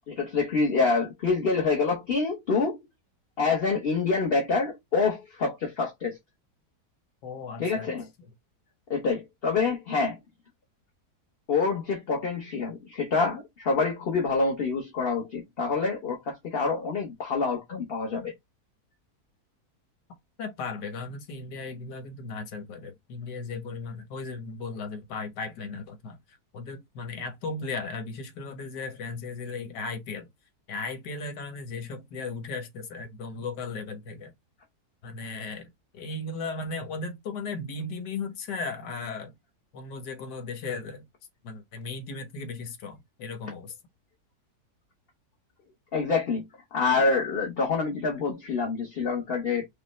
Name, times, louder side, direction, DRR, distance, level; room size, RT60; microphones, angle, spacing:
voice 1, 0.1-2.8 3.4-6.2 7.6-8.1 8.9-10.2 11.5-18.3 45.9-46.4 46.7-49.7, left 4 dB, 40° left, 1.0 m, -26 dB
voice 2, 7.2-7.9 20.4-30.3 30.7-34.3 35.0-39.3 39.7-41.0 41.4-43.7, left 3 dB, 85° left, 1.6 m, -36 dB
5.4 x 2.3 x 3.1 m
omnidirectional pair, 1.8 m